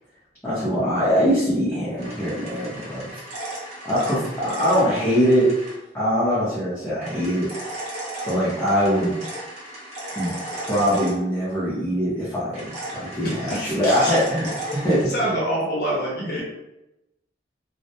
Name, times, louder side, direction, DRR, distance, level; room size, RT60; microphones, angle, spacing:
voice 1, 0.4-3.1 3.8-5.5 5.9-7.5 8.2-9.2 10.2-15.1, equal, 10° left, -11 dB, 0.6 m, -22 dB
sound 1, 2.0-5.8 7.0-11.6 12.5-15.0, right 1 dB, 40° right, 0.7 m, -35 dB
voice 2, 13.2-14.1 15.0-16.4, equal, 60° left, -5 dB, 0.6 m, -26 dB
2.3 x 2.0 x 2.7 m, 0.92 s
head